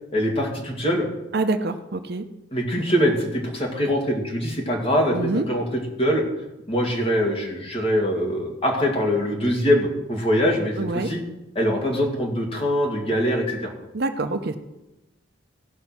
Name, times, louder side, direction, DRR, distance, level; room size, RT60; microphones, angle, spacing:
voice 1, 0.1-1.1 2.5-6.2 6.7-11.2 11.6-13.7, equal, 30° left, 0 dB, 2.2 m, -23 dB
voice 2, 1.3-2.2 5.1-5.5 10.8-11.1 13.9-14.6, right 2 dB, 55° right, 8 dB, 0.7 m, -25 dB
16.0 x 5.4 x 6.0 m, 0.97 s
head